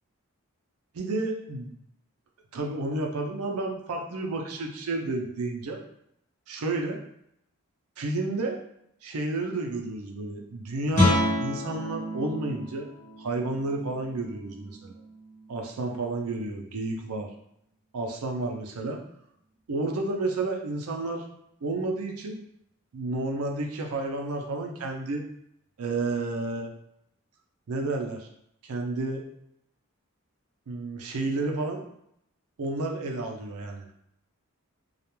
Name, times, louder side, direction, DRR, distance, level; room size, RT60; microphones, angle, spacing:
voice 1, 0.9-1.7 2.5-5.8 6.5-7.0 8.0-8.6 9.0-12.9 13.2-14.9 15.5-17.3 17.9-19.0 19.7-21.2 21.6-22.4 22.9-25.3 25.8-26.7 27.7-28.3 28.6-29.2 30.7-31.8 32.6-33.9, right 2 dB, 80° right, 2 dB, 0.5 m, -31 dB
Guitar, 10.9-16.5, left 1 dB, 35° left, 0.8 m, -30 dB
2.3 x 2.1 x 2.9 m, 0.74 s
head